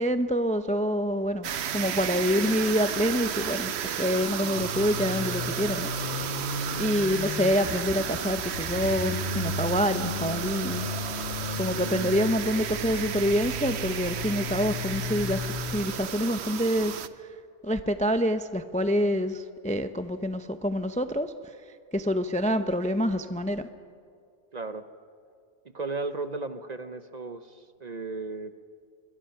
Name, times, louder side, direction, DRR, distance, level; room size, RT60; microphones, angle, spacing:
voice 1, 0.0-3.7 4.0-6.4 6.8-10.8 11.6-15.4 15.7-17.3 17.6-21.3 21.9-23.7, equal, 10° left, 9 dB, 0.5 m, -27 dB
sound 1, 1.4-17.1, right 9 dB, 65° right, 1.0 m, -33 dB
sound 2, 4.5-15.8, left 3 dB, 45° left, 1.2 m, -35 dB
voice 2, 11.8-12.2 24.5-24.9 25.7-28.5, right 3 dB, 40° right, 10 dB, 0.8 m, -35 dB
26.5 x 22.0 x 5.7 m, 2.3 s
omnidirectional pair, 1.2 m